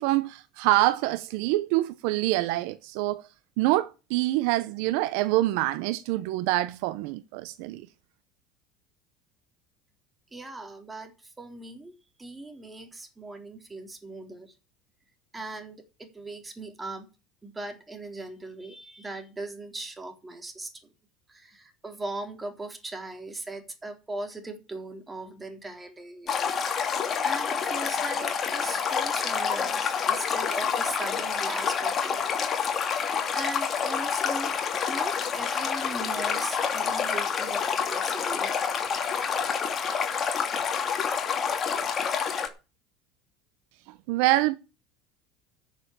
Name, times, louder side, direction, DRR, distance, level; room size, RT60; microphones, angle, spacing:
voice 1, 0.0-3.2 3.6-7.9 44.1-44.5, right 17 dB, 75° right, 0.8 m, -25 dB
voice 2, 10.3-11.9 12.2-14.5 15.3-17.1 17.4-20.7 21.3-26.5 26.9-32.3 33.3-34.6 34.9-38.5, right 2 dB, 15° right, 3.7 m, -39 dB
Stream, 26.3-42.5, left 6 dB, 35° left, 2.8 m, -28 dB
11.5 x 6.9 x 8.7 m
supercardioid pair, 115°, 0 cm